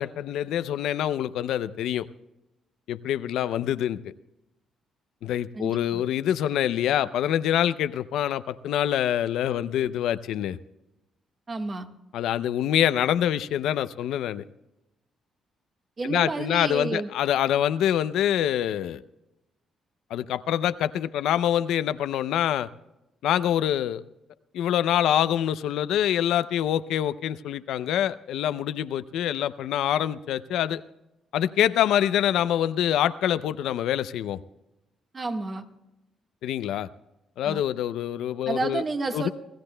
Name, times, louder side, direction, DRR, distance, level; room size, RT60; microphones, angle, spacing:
voice 1, 0.0-2.1 2.9-4.0 5.2-10.6 12.1-14.4 16.0-19.0 20.1-22.7 23.2-24.0 24.5-30.8 31.3-34.4 36.4-36.9 37.4-38.8 39.1-39.3, left 11 dB, 85° left, 13 dB, 0.5 m, -25 dB
voice 2, 5.5-6.0 11.5-11.9 16.0-17.1 35.1-35.6 37.4-37.6 38.4-39.3, right 3 dB, 35° right, 6 dB, 1.4 m, -30 dB
27.0 x 15.0 x 2.2 m, 0.96 s
cardioid pair, 90°, 0 cm